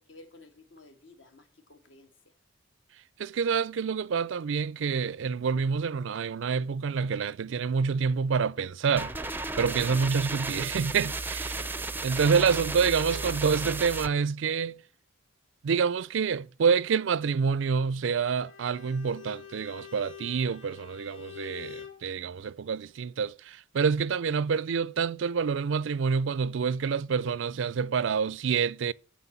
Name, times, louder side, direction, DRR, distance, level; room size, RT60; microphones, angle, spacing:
voice 1, 0.0-2.3 11.6-12.1 12.5-12.8 13.1-13.3, left 1 dB, 65° left, 1.7 m, -52 dB
voice 2, 3.2-9.1 9.6-11.6 12.0-14.8 15.6-28.9, right 6 dB, 65° right, 0.4 m, -27 dB
sound 1, 9.0-14.1, right 3 dB, 10° right, 0.5 m, -34 dB
Bowed string instrument, 18.3-22.0, left 8 dB, 90° left, 1.7 m, -46 dB
8.0 x 6.0 x 7.2 m
head